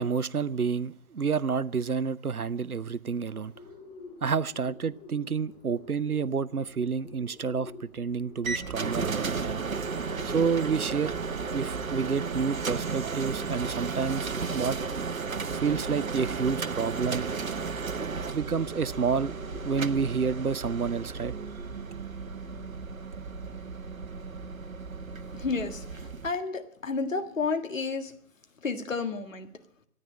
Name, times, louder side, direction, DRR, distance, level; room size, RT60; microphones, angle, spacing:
voice 1, 0.0-3.5 4.2-9.6 10.2-11.1 11.5-14.8 15.5-17.2 18.3-19.3 19.6-21.3, right 5 dB, 90° right, 0.7 m, -29 dB
Bird, 3.3-20.4, left 3 dB, 20° left, 1.8 m, -51 dB
sound 1, 8.4-26.3, right 5 dB, 70° right, 1.1 m, -34 dB
voice 2, 25.3-25.8 26.2-28.1 28.6-29.5, left 4 dB, 65° left, 1.8 m, -31 dB
13.5 x 10.0 x 8.5 m
figure-of-eight pair, 140°, 43 cm